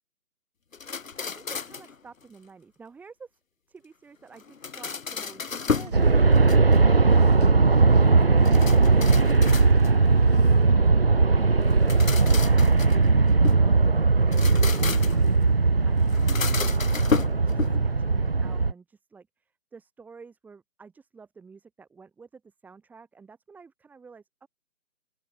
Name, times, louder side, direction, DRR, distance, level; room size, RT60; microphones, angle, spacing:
sound 1, 0.7-2.0 4.4-6.0 6.4-7.0 8.4-10.1 11.7-13.7 14.2-15.3 16.1-18.0, left 5 dB, 60° left, 2.4 m, -32 dB
voice 1, 1.2-3.4 3.7-24.5, right 5 dB, 5° right, 5.4 m, -50 dB
sound 2, 5.5-10.7, right 10 dB, 25° right, 5.1 m, -52 dB
Aircraft, 5.9-18.7, right 3 dB, 45° right, 0.5 m, -19 dB
open air
figure-of-eight pair, 165°, 45 cm